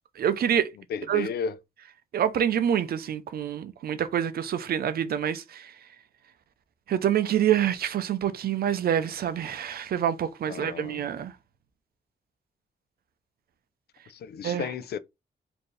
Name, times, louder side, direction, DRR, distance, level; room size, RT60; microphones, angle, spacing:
voice 1, 0.2-0.7 1.1-1.3 2.1-5.7 6.9-11.3 14.4-14.7, right 9 dB, 70° right, 0.5 m, -26 dB
voice 2, 0.9-1.6 10.5-11.1 14.1-15.0, left 6 dB, 80° left, 0.4 m, -33 dB
4.4 x 2.7 x 3.2 m
wide cardioid pair, 165°, 16 cm